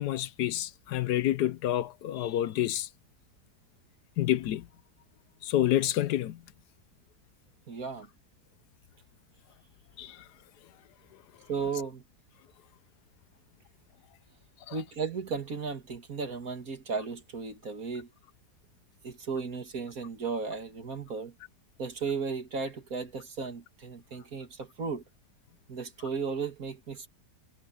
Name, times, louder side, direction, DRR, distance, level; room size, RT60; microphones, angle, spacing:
voice 1, 0.0-2.9 4.2-4.7 5.4-6.4 10.0-10.2 14.7-14.8, left 13 dB, 80° left, 1.2 m, -28 dB
voice 2, 7.7-8.1 11.5-12.0 14.7-18.1 19.0-21.3 21.8-25.0 25.7-27.1, right 5 dB, 55° right, 2.6 m, -35 dB
omnidirectional pair, 1.8 m